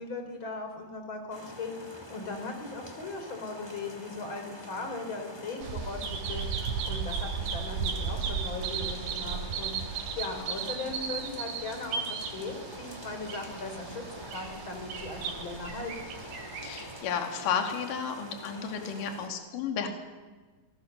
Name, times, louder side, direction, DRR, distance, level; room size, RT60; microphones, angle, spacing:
voice 1, 0.0-16.2, left 3 dB, 30° left, 5 dB, 4.4 m, -39 dB
sound 1, 1.3-19.3, left 1 dB, 10° left, 1.7 m, -46 dB
Bird vocalization bird call bird song, 5.6-17.0, right 6 dB, 80° right, 5.0 m, -35 dB
voice 2, 16.6-19.9, left 7 dB, 50° left, 4 dB, 3.8 m, -32 dB
27.0 x 22.0 x 6.8 m, 1.4 s
omnidirectional pair, 5.2 m